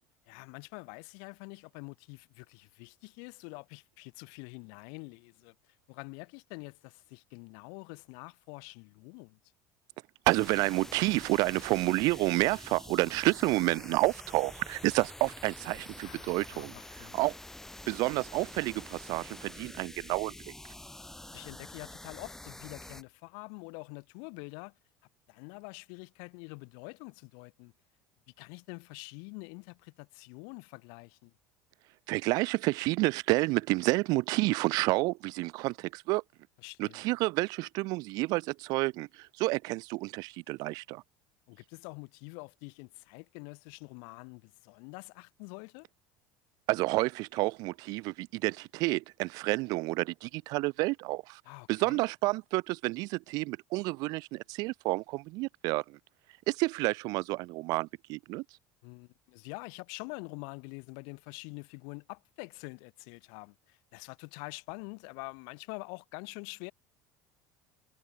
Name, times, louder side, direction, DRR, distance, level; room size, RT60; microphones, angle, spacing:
voice 1, 0.3-5.5 5.9-9.4 16.0-17.2 21.3-24.7 25.3-27.7 28.4-31.3 36.6-37.0 41.5-45.9 51.5-52.0 58.8-66.7, left 40 dB or more, 75° left, 1.9 m, -46 dB
sound 1, 10.3-23.0, left 1 dB, 5° left, 0.9 m, -47 dB
voice 2, 10.3-16.7 17.1-17.3 17.9-20.3 32.1-36.2 36.8-41.0 46.7-51.4 51.7-56.0 56.5-58.4, right 23 dB, 65° right, 0.7 m, -29 dB
supercardioid pair, 115°, 7 cm